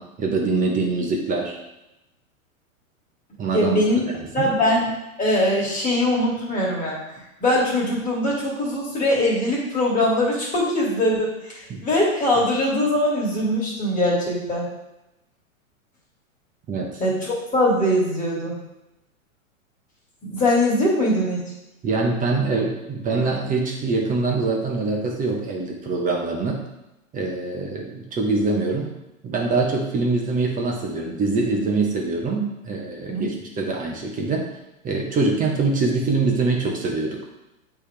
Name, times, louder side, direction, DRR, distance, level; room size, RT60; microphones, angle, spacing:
voice 1, 0.0-1.6 3.4-4.5 11.7-11.8 16.7-17.0 21.8-26.6 27.1-28.9 29.2-34.5 34.8-37.2, right 3 dB, 20° right, 1 dB, 1.1 m, -24 dB
voice 2, 3.5-4.0 4.3-4.9 5.2-7.0 7.4-14.7 17.0-18.6 20.2-21.5 33.1-33.3, left 1 dB, 20° left, -4 dB, 2.2 m, -22 dB
8.2 x 3.5 x 3.4 m, 0.94 s
hypercardioid pair, 110°, 42 cm